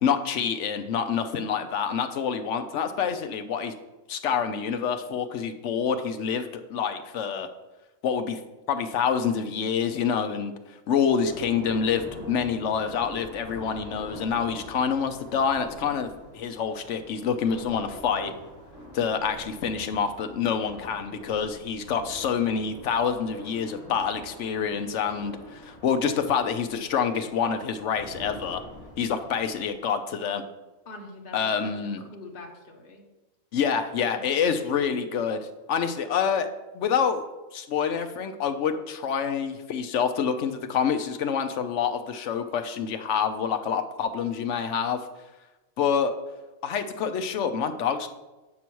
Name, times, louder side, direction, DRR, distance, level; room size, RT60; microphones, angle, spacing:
voice 1, 0.0-3.7 4.1-7.5 8.0-8.4 8.7-10.5 10.9-16.1 16.3-18.3 18.9-28.6 29.0-30.4 31.3-32.0 33.5-35.4 35.7-36.5 36.7-37.3 37.5-45.0 45.8-46.1 46.6-48.1, left 7 dB, 65° left, 8 dB, 0.9 m, -27 dB
sound 1, 11.2-29.7, left 1 dB, 25° right, 2.0 m, -45 dB
voice 2, 30.9-33.0 34.0-35.1, left 3 dB, 45° left, 1 dB, 1.2 m, -44 dB
8.5 x 5.6 x 4.6 m, 1.1 s
omnidirectional pair, 1.4 m